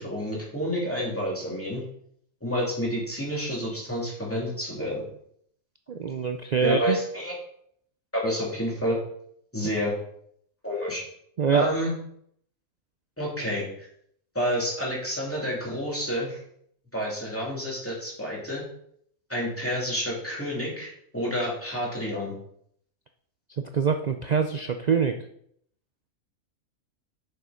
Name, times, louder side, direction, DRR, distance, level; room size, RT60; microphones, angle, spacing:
voice 1, 0.0-1.8 2.4-5.0 6.6-7.3 8.1-9.0 9.5-9.9 10.6-11.0 11.5-11.9 13.2-13.6 14.3-16.4 16.9-18.6 19.3-22.3, equal, 10° left, -4 dB, 2.7 m, -29 dB
voice 2, 5.9-7.0 11.4-11.7 23.5-25.2, right 6 dB, 85° right, 7 dB, 0.3 m, -24 dB
6.9 x 6.6 x 5.0 m, 0.68 s
omnidirectional pair, 1.5 m